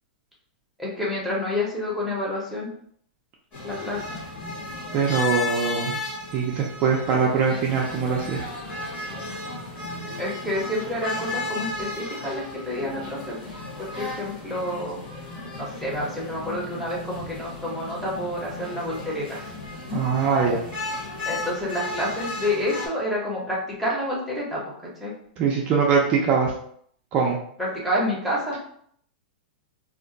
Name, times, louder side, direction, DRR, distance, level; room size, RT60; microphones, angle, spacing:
voice 1, 0.8-2.7 3.6-4.0 10.2-13.4 13.8-15.0 15.6-19.4 19.9-20.0 21.3-24.7 25.0-25.1 27.6-28.6, left 1 dB, ahead, -6 dB, 0.8 m, -28 dB
sound 1, 3.5-22.9, left 2 dB, 30° left, 1.1 m, -34 dB
voice 2, 4.9-6.0 6.3-8.4 19.9-20.6 25.4-26.5 27.1-27.4, right 5 dB, 25° right, -2 dB, 0.4 m, -22 dB
2.5 x 2.1 x 3.8 m, 0.64 s
supercardioid pair, 160°, 5 cm